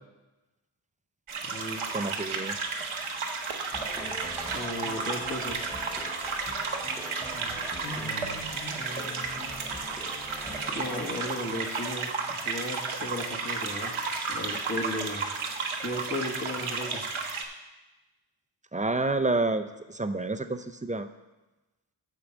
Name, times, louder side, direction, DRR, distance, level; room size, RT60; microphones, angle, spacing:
sound 1, 1.3-17.4, right 4 dB, 85° right, 1.0 m, -33 dB
voice 1, 1.4-1.9 4.5-5.6 7.3-9.6 10.7-14.0 14.3-15.3 15.8-17.0, left 1 dB, 40° left, -1 dB, 1.7 m, -36 dB
voice 2, 1.9-2.6 18.7-21.1, right 2 dB, 15° right, 9 dB, 0.5 m, -29 dB
sound 2, 3.7-11.1, left 1 dB, 5° left, 1.2 m, -43 dB
8.7 x 4.7 x 7.1 m, 1.1 s
wide cardioid pair, 70°, 47 cm